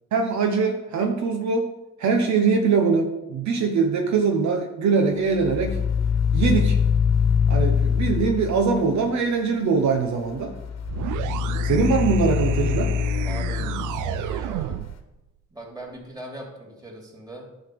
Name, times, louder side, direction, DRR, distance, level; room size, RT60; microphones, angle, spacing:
voice 1, 0.1-1.7 2.0-5.8 6.3-6.8 7.5-10.5 11.6-12.9, right 5 dB, 65° right, 3 dB, 1.1 m, -22 dB
sound 1, 5.3-9.0 10.3-14.7, left 7 dB, 60° left, 1.3 m, -24 dB
sound 2, 10.8-15.0, right 12 dB, 85° right, 0.5 m, -32 dB
voice 2, 13.2-14.8 15.5-17.5, right 1 dB, 15° right, -2 dB, 3.1 m, -40 dB
10.0 x 4.1 x 6.9 m, 0.97 s
cardioid pair, 90°, 30 cm